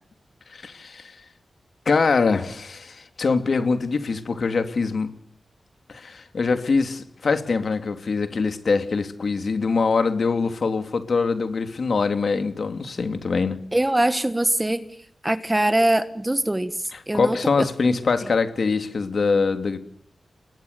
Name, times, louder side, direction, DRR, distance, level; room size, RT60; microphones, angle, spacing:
voice 1, 0.5-1.2 1.8-5.1 5.9-13.6 17.1-19.8, left 4 dB, 60° left, 8 dB, 3.0 m, -23 dB
voice 2, 13.7-14.8 15.2-16.7 17.1-18.0, right 1 dB, 15° right, 12 dB, 1.5 m, -22 dB
30.0 x 21.5 x 7.0 m, 0.66 s
wide cardioid pair, 130°, 0 cm